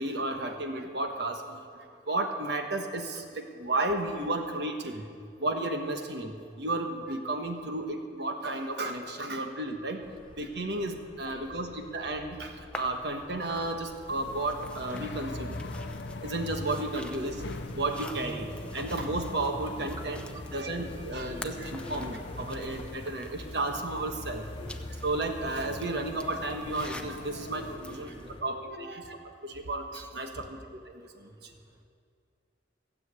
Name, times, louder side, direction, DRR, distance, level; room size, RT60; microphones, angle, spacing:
voice 1, 0.0-1.4 1.8-5.1 5.4-10.0 10.4-15.6 16.2-17.4 17.7-20.2 20.5-24.5 25.0-28.1 28.4-29.0 29.4-30.6 30.9-31.5, right 2 dB, 70° right, 4 dB, 1.3 m, -33 dB
voice 2, 4.5-4.9 6.8-7.0 7.9-8.2 9.0-9.1 9.8-10.3 11.2-11.5 19.7-20.7 21.2-22.0 23.4-23.5 24.3-24.8 27.4-29.1 30.2-30.6 30.9-31.1, equal, 20° right, 4 dB, 1.1 m, -49 dB
sound 1, 10.0-28.4, left 1 dB, 30° left, 1.0 m, -45 dB
sound 2, 12.7-28.3, left 2 dB, 5° left, 0.7 m, -49 dB
sound 3, 14.1-27.8, left 3 dB, 75° left, 0.7 m, -44 dB
16.5 x 7.5 x 8.2 m, 2.3 s
head